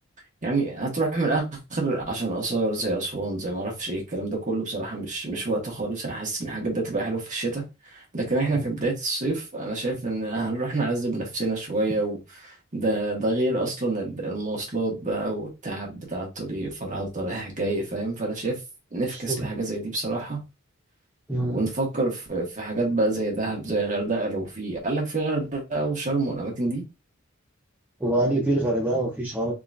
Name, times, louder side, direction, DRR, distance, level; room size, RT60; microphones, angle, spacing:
voice 1, 0.4-7.6 7.9-18.6 18.9-20.4 21.5-26.8, right 2 dB, 40° right, 1.5 m, -27 dB
voice 2, 19.1-19.5 21.3-21.6 28.0-29.5, right 1 dB, 10° right, 0.7 m, -25 dB
3.7 x 3.0 x 2.5 m
head